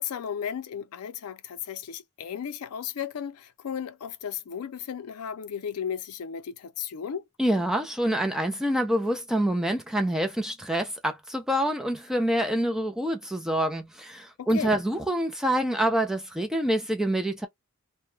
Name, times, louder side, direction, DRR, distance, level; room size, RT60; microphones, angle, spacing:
voice 1, 0.0-7.2 14.4-14.8, left 8 dB, 90° left, 0.4 m, -35 dB
voice 2, 7.4-17.5, right 1 dB, ahead, 0.3 m, -26 dB
2.2 x 2.1 x 3.0 m
head